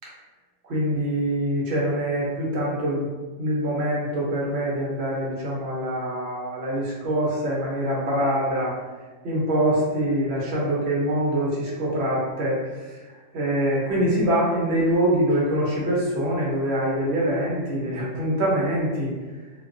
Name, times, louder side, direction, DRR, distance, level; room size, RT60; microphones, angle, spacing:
voice 1, 0.6-3.1 3.4-8.7 9.2-13.0 13.3-19.1, right 1 dB, 60° right, -5 dB, 0.9 m, -24 dB
2.3 x 2.2 x 2.5 m, 1.3 s
omnidirectional pair, 1.3 m